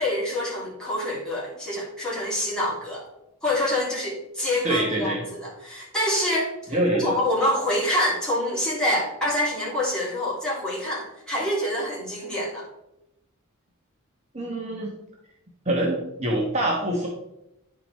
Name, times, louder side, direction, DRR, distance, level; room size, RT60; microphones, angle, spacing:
voice 1, 0.0-3.0 3.4-12.6, left 1 dB, 5° left, -8 dB, 3.0 m, -26 dB
voice 2, 4.6-5.2 6.7-7.2 14.3-14.9 15.6-17.1, right 1 dB, 30° right, -2 dB, 1.1 m, -25 dB
9.7 x 4.7 x 4.2 m, 0.88 s
head